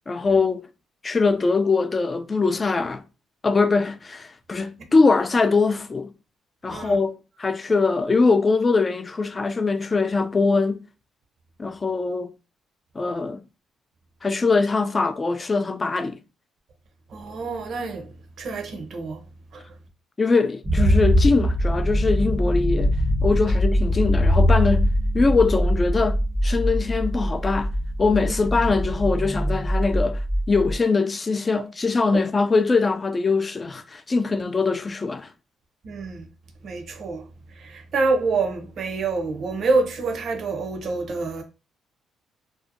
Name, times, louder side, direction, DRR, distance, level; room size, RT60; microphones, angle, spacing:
voice 1, 0.1-0.7 1.0-3.0 3.4-6.1 6.6-10.8 11.6-12.3 13.0-13.4 14.2-16.2 20.2-22.9 23.2-27.7 28.0-30.2 30.5-35.3, left 4 dB, 30° left, 0.3 m, -22 dB
voice 2, 17.1-18.1 18.4-19.2 19.5-19.6 31.6-31.7 35.8-36.3 36.6-37.3 37.5-41.4, right 3 dB, 60° right, 0.6 m, -26 dB
sound 1, 20.6-30.8, equal, 15° right, 0.6 m, -22 dB
2.6 x 2.1 x 2.5 m
cardioid pair, 90°, 0 cm